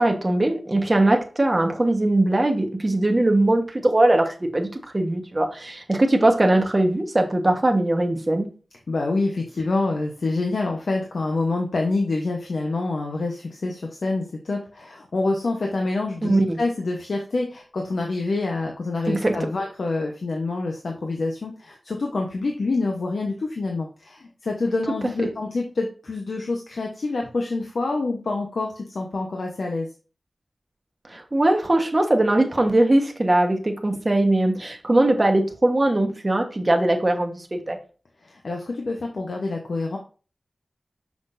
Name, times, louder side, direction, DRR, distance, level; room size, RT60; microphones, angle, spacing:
voice 1, 0.0-8.6 16.2-16.6 19.1-19.4 25.2-25.3 31.1-37.8, right 1 dB, 30° right, 4 dB, 1.2 m, -20 dB
voice 2, 8.9-29.9 38.2-40.0, left 3 dB, 85° left, 1 dB, 1.0 m, -27 dB
6.0 x 5.9 x 2.6 m, 0.36 s
wide cardioid pair, 75°, 0 cm